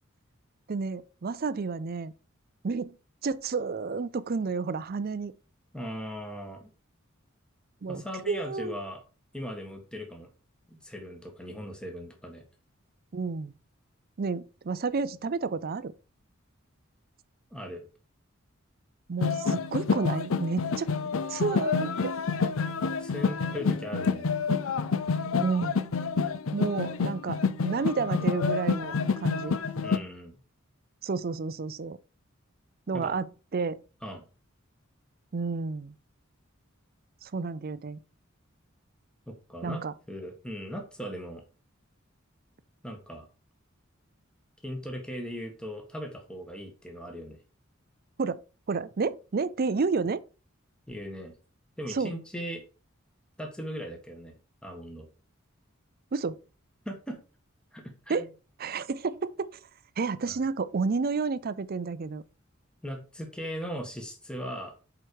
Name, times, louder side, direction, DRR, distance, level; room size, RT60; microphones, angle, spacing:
voice 1, 0.7-2.1 2.6-3.0 3.2-5.3 7.8-8.7 13.1-13.5 14.2-15.9 19.1-20.9 21.3-22.2 22.4-22.5 25.4-25.8 26.5-29.6 31.0-32.0 32.9-33.3 33.5-33.8 35.3-35.9 37.2-38.0 39.6-39.9 48.2-48.4 48.7-50.2 51.9-52.2 56.1-56.4 58.1-58.3 58.6-59.5 60.0-62.2, right 4 dB, 45° right, 0.5 m, -30 dB
voice 2, 5.7-6.7 7.9-9.0 9.3-10.3 10.7-12.4 17.5-17.8 23.0-24.3 29.8-30.3 32.9-33.1 34.0-34.2 39.3-39.8 40.1-41.4 42.8-43.2 44.6-47.4 50.9-51.3 51.8-52.6 53.4-54.3 54.6-55.1 56.8-57.2 57.7-58.3 60.2-60.4 62.8-64.8, equal, 5° left, 1.5 m, -38 dB
sound 1, 19.2-30.0, left 5 dB, 80° left, 0.6 m, -28 dB
7.6 x 4.9 x 4.7 m
head